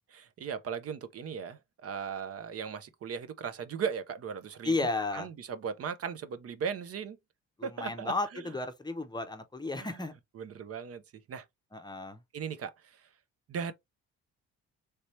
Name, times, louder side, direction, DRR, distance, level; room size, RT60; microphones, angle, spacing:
voice 1, 0.1-4.7 5.1-7.2 7.6-8.4 9.8-9.9 10.3-11.0 11.3-11.5 12.3-13.1 13.5-13.7, right 7 dB, 50° right, 0.6 m, -37 dB
voice 2, 4.6-5.3 7.6-10.2 11.7-12.2, left 2 dB, 15° left, 0.6 m, -33 dB
3.2 x 2.7 x 3.1 m
cardioid pair, 90°, 30 cm